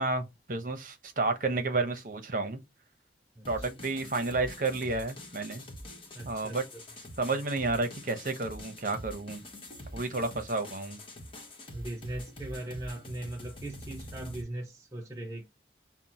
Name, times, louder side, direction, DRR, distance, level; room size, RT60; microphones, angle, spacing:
voice 1, 0.0-2.6 3.5-5.6 6.2-6.6 7.2-9.4 9.9-11.0, right 3 dB, 45° right, 0.9 m, -31 dB
sound 1, 3.4-14.4, left 1 dB, 30° left, 1.1 m, -45 dB
voice 2, 3.4-3.7 6.1-6.6 7.3-7.4 11.7-15.5, right 1 dB, 15° right, 0.5 m, -39 dB
5.8 x 2.2 x 4.2 m
head